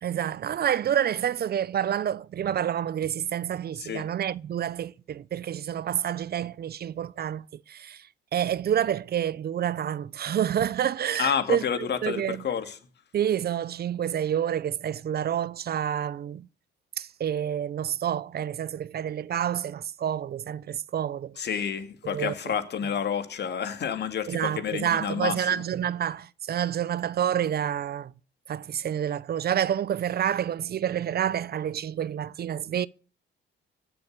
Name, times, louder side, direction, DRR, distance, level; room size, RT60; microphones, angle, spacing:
voice 1, 0.0-12.4 13.1-16.5 17.0-21.5 22.0-22.3 24.3-28.1 28.5-32.9, right 9 dB, 55° right, 0.6 m, -28 dB
voice 2, 11.2-12.8 21.4-25.6, left 7 dB, 60° left, 2.3 m, -29 dB
16.0 x 7.0 x 8.2 m
cardioid pair, 90°, 20 cm